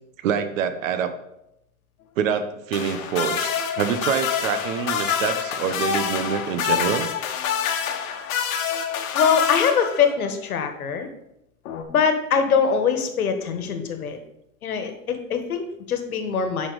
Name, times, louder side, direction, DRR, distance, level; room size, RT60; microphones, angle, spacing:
voice 1, 0.2-1.1 2.2-7.1 13.6-13.8, right 8 dB, 65° right, 10 dB, 1.1 m, -26 dB
sound 1, 2.7-10.3 11.7-11.8, left 8 dB, 70° left, 1.3 m, -26 dB
voice 2, 9.1-11.1 11.9-14.2 14.6-16.7, left 6 dB, 85° left, 7 dB, 1.5 m, -23 dB
8.8 x 5.8 x 4.0 m, 0.84 s
hypercardioid pair, 115°, 42 cm